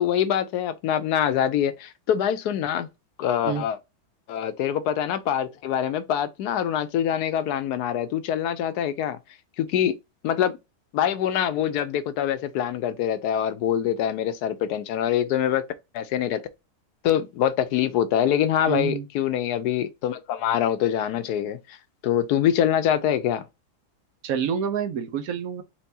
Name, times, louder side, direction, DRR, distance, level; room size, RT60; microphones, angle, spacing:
voice 1, 0.0-2.9 3.2-3.8 4.3-9.2 9.6-9.9 10.2-10.6 10.9-15.6 15.9-16.4 17.0-21.8 22.0-23.4, left 10 dB, 85° left, 1.2 m, -24 dB
voice 2, 18.7-19.0 24.2-25.6, right 8 dB, 70° right, 1.1 m, -27 dB
4.5 x 3.4 x 2.7 m
omnidirectional pair, 1.7 m